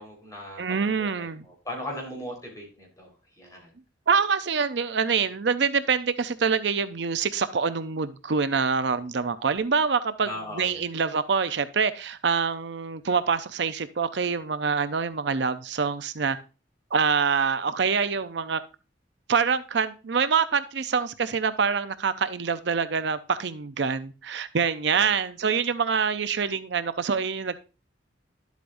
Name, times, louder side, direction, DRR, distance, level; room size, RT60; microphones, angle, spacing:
voice 1, 0.0-3.1 3.4-3.7 10.2-10.8 24.9-25.1, left 1 dB, 20° left, 4.0 m, -38 dB
voice 2, 0.6-1.4 4.1-16.4 16.9-18.6 19.3-27.6, right 5 dB, 70° right, 0.6 m, -25 dB
11.5 x 8.2 x 2.6 m
head